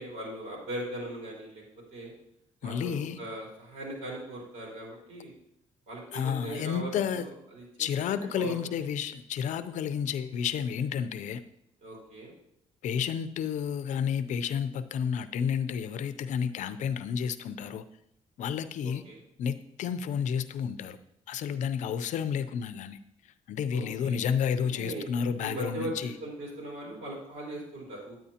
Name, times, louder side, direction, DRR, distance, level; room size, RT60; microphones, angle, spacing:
voice 1, 0.0-1.6 1.9-2.1 2.6-5.3 5.9-8.7 11.8-12.3 18.8-19.2 23.7-24.3 24.6-25.1 25.4-25.9 26.2-28.1, right 1 dB, 85° right, -3 dB, 4.0 m, -39 dB
voice 2, 2.6-3.2 6.1-7.3 7.8-11.4 12.8-17.8 18.4-19.0 19.4-21.0 21.3-23.0 23.5-26.1, left 7 dB, 80° left, 12 dB, 0.5 m, -31 dB
10.0 x 9.0 x 2.9 m, 0.79 s
cardioid pair, 105°, 13 cm